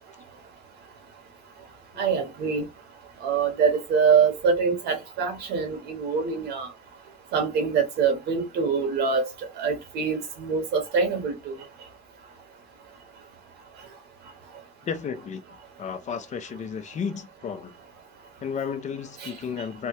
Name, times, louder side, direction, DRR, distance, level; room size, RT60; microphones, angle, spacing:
voice 1, 2.0-2.6 3.2-6.7 7.3-9.2 9.6-11.6 19.2-19.3, right 6 dB, 80° right, 1.4 m, -24 dB
voice 2, 14.8-15.4 15.8-17.7 18.4-19.9, left 6 dB, 45° left, 0.7 m, -33 dB
3.4 x 2.2 x 2.9 m
cardioid pair, 110°, 17 cm